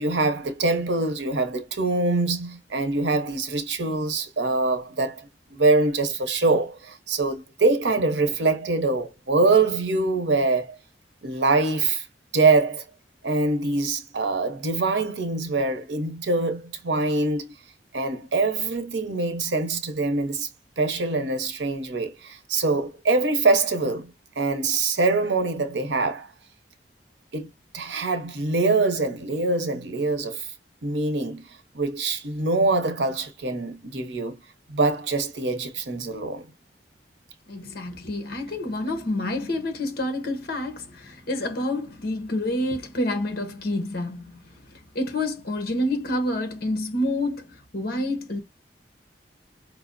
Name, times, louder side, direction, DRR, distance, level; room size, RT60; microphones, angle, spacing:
voice 1, 0.0-10.8 11.2-12.1 12.3-12.8 13.2-17.5 17.9-20.5 20.8-26.3 27.3-27.5 27.7-30.5 30.8-31.5 31.7-34.4 34.7-36.5, right 3 dB, 85° right, 0.8 m, -24 dB
voice 2, 37.5-44.2 44.9-48.4, left 1 dB, 60° left, 0.8 m, -28 dB
4.9 x 2.0 x 2.5 m
head